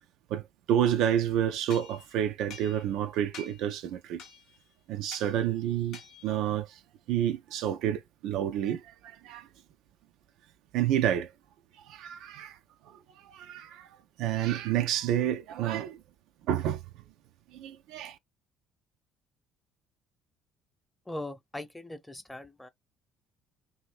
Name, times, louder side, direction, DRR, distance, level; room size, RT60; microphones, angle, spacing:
voice 1, 0.3-4.2 4.9-6.8 7.1-9.5 10.7-11.3 11.8-12.6 12.8-13.9 14.2-16.0 16.5-16.8 17.5-18.2, right 10 dB, 65° right, 0.4 m, -29 dB
sound 1, 1.7-3.0 3.3-3.7 4.2-4.6 5.1-5.3 5.9-6.4, left 5 dB, 60° left, 0.6 m, -48 dB
voice 2, 21.1-22.7, left 1 dB, 10° left, 0.8 m, -40 dB
2.8 x 2.6 x 3.2 m
hypercardioid pair, 55°, 0 cm